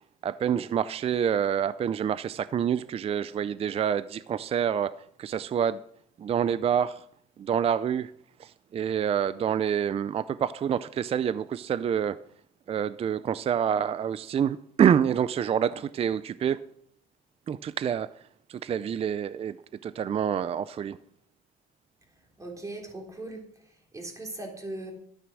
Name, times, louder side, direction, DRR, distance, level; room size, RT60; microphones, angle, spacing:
voice 1, 0.2-5.8 6.2-7.0 7.4-8.1 8.4-12.2 12.7-16.6 17.5-18.1 18.5-19.6 19.8-21.0, right 8 dB, 35° right, 16 dB, 0.5 m, -27 dB
voice 2, 22.4-24.9, right 2 dB, 20° right, 2 dB, 3.7 m, -39 dB
12.5 x 9.4 x 6.3 m, 0.67 s
cardioid pair, 110°, 17 cm